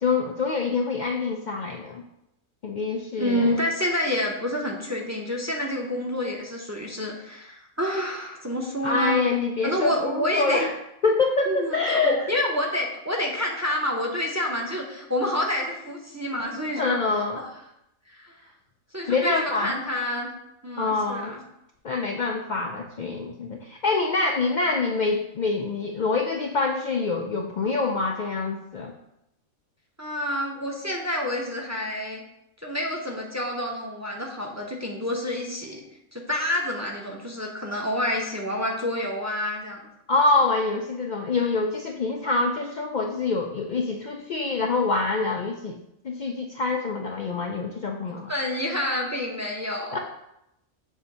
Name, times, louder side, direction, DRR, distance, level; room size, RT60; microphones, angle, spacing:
voice 1, 0.0-2.0 2.6-3.6 8.8-10.7 11.0-12.3 16.7-17.4 19.1-19.7 20.8-21.3 21.8-28.9 40.1-45.8 46.0-48.3 49.9-50.0, left 3 dB, 85° left, 1 dB, 0.4 m, -25 dB
voice 2, 3.2-9.2 9.6-10.6 11.5-17.0 17.4-17.5 18.2-18.3 18.9-20.3 20.6-21.4 30.0-32.2 32.6-35.8 36.1-39.9 48.3-50.0, left 1 dB, 15° right, -1 dB, 0.6 m, -28 dB
7.3 x 2.7 x 5.3 m, 0.82 s
omnidirectional pair, 1.4 m